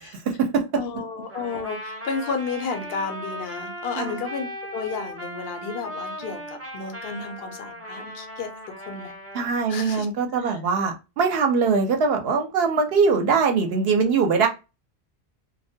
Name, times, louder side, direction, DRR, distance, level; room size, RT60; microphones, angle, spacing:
voice 1, 0.3-0.6 4.0-4.2 9.3-14.5, right 5 dB, 70° right, 0.8 m, -22 dB
voice 2, 0.8-8.5 8.9-9.1 9.7-10.1 10.4-10.6, left 5 dB, 70° left, 0.7 m, -32 dB
Trumpet, 1.3-9.5, equal, 20° right, 0.5 m, -37 dB
2.2 x 2.1 x 2.6 m
omnidirectional pair, 1.1 m